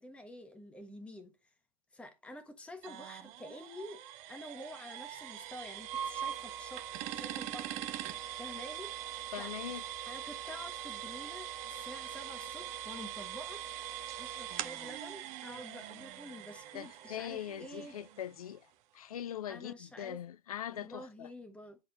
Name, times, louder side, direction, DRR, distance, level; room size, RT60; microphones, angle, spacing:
voice 1, 0.0-1.5 1.9-4.0 4.3-6.8 7.1-7.9 8.4-9.5 10.1-13.6 14.2-17.9 19.5-20.2 20.7-21.8, left 1 dB, 5° left, 1.3 m, -48 dB
sound 1, 2.8-18.5, right 11 dB, 35° right, 1.0 m, -42 dB
voice 2, 9.3-9.8 16.7-18.7 18.9-21.3, left 10 dB, 70° left, 0.5 m, -41 dB
10.5 x 4.2 x 3.9 m
figure-of-eight pair, 105°, 20 cm